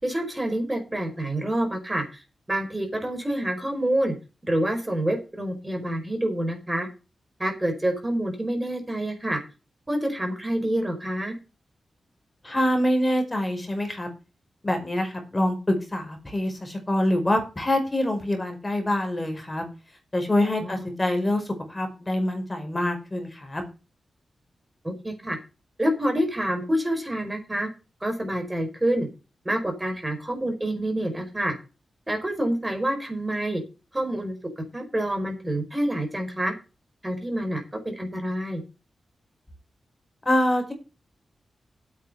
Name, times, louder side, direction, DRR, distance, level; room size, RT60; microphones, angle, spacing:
voice 1, 0.0-2.2 2.5-4.1 4.4-6.9 7.4-9.4 9.9-11.3 20.6-20.9 24.8-25.4 25.8-27.7 28.0-29.1 29.4-31.5 32.1-33.6 33.9-36.5 37.0-38.6, right 1 dB, 20° right, 4 dB, 4.7 m, -27 dB
voice 2, 12.4-14.1 14.6-19.6 20.1-21.4 21.7-23.6 40.2-40.7, left 1 dB, 25° left, 5 dB, 5.1 m, -25 dB
9.1 x 7.6 x 6.7 m, 0.30 s
cardioid pair, 70°, 0 cm